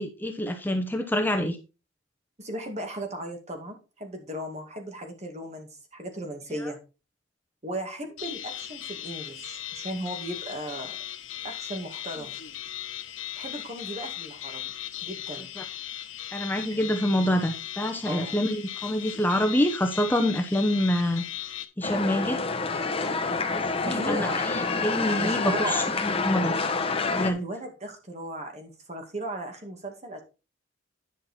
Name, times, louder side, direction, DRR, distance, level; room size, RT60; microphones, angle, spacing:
voice 1, 0.0-1.6 6.6-6.7 15.6-15.7 16.3-21.5 21.8-22.4 23.5-26.5 27.1-27.4, left 1 dB, 10° left, 5 dB, 0.8 m, -26 dB
voice 2, 2.4-6.8 7.6-10.9 11.4-12.4 13.4-14.7 15.0-15.5 18.1-18.4 23.8-24.5 25.2-25.8 27.3-30.2, right 1 dB, 35° right, 4 dB, 2.2 m, -36 dB
sound 1, 8.2-21.7, left 12 dB, 90° left, 1.1 m, -38 dB
sound 2, 21.8-27.3, left 4 dB, 30° left, 1.1 m, -27 dB
10.5 x 5.9 x 4.3 m, 0.31 s
head